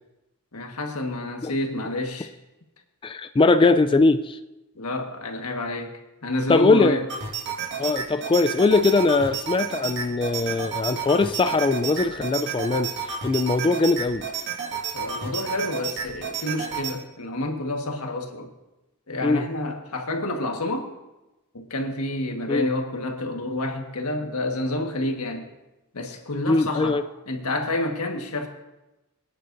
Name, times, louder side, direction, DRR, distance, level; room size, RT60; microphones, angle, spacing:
voice 1, 0.5-2.3 4.7-7.0 14.9-18.5 19.1-20.9 21.5-25.5 25.9-27.0 27.3-28.5, left 1 dB, 80° left, 3 dB, 1.5 m, -29 dB
voice 2, 3.0-4.4 6.5-7.0 7.8-14.3 19.2-19.5 22.5-22.7 26.5-27.0, left 3 dB, 20° left, 11 dB, 0.3 m, -21 dB
sound 1, 7.1-16.9, right 6 dB, 55° right, 2.0 m, -31 dB
23.5 x 10.0 x 2.7 m, 1.0 s
head